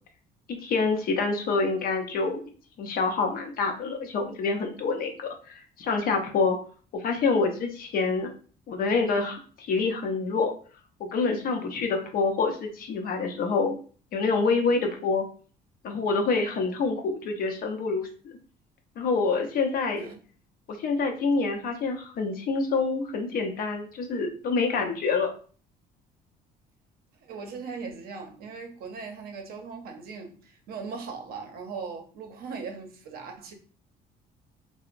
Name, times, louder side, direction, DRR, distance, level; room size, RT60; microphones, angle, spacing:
voice 1, 0.5-2.4 2.8-6.6 6.9-8.3 8.7-10.5 11.0-13.8 14.1-15.3 15.8-18.3 19.0-20.1 20.7-25.3, left 4 dB, 60° left, 0.6 m, -27 dB
voice 2, 27.2-33.5, right 5 dB, 65° right, 0.6 m, -39 dB
2.9 x 2.0 x 2.5 m
cardioid pair, 110°, 17 cm